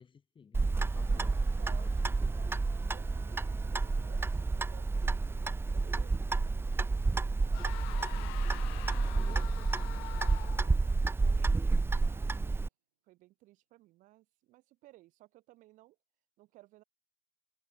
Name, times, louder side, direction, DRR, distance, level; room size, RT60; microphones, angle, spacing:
voice 1, 0.0-1.4 1.7-2.2 8.9-9.4, left 6 dB, 35° left, 3.8 m, -56 dB
Clock, 0.5-12.7, right 3 dB, 15° right, 0.7 m, -30 dB
sound 1, 0.8-10.7 11.0-11.1, right 15 dB, 80° right, 2.2 m, -60 dB
voice 2, 1.0-2.0 2.3-3.3 3.7-7.8 8.1-10.1 10.7-12.6 13.0-16.0 16.4-16.8, right 17 dB, 65° right, 6.4 m, -58 dB
sound 2, 7.5-10.9, left 34 dB, 75° left, 0.9 m, -46 dB
hypercardioid pair, 60°, 14 cm